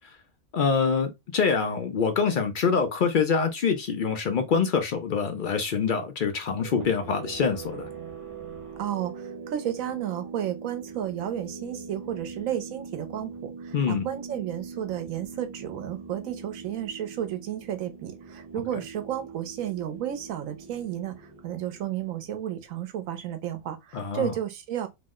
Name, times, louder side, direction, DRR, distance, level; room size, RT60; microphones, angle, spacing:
voice 1, 0.5-7.9 13.7-14.1 23.9-24.3, left 5 dB, 60° left, 0.5 m, -25 dB
sound 1, 6.6-22.9, right 5 dB, 55° right, 1.4 m, -42 dB
voice 2, 8.8-24.9, right 11 dB, 85° right, 1.1 m, -32 dB
3.0 x 2.0 x 3.5 m
omnidirectional pair, 1.4 m